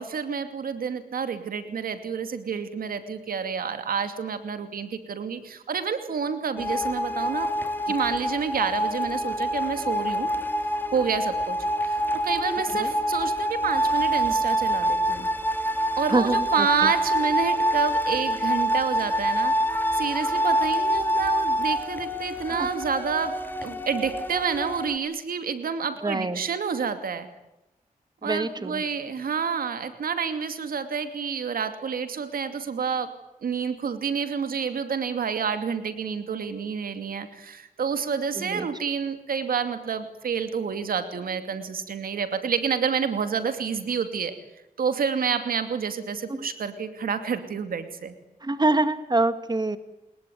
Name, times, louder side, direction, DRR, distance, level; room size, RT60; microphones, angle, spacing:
voice 1, 0.0-7.5 7.9-10.3 10.9-12.0 12.2-15.3 16.0-19.5 19.9-27.3 28.2-33.1 33.4-44.3 44.8-48.1, right 6 dB, 90° right, 9 dB, 2.6 m, -29 dB
sound 1, 6.6-25.0, equal, 15° left, 3.6 m, -26 dB
voice 2, 16.1-16.9 22.6-22.7 26.0-26.4 28.2-28.8 38.4-38.7 46.3-46.5 48.4-49.8, right 2 dB, 30° right, 10 dB, 2.3 m, -25 dB
29.5 x 21.0 x 9.4 m, 0.92 s
cardioid pair, 60°, 15 cm